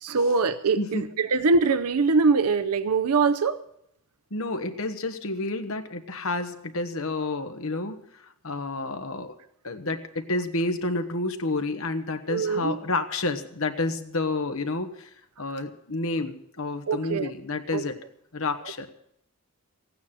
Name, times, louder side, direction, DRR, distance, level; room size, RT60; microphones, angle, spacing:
voice 1, 0.0-3.6 12.3-12.8 16.9-17.3 17.7-17.8, right 4 dB, 85° right, 13 dB, 0.6 m, -23 dB
voice 2, 4.3-8.0 8.4-9.3 9.6-15.1 15.4-18.0 18.3-18.9, left 2 dB, 65° left, 7 dB, 1.3 m, -29 dB
15.5 x 9.5 x 7.3 m, 0.74 s
head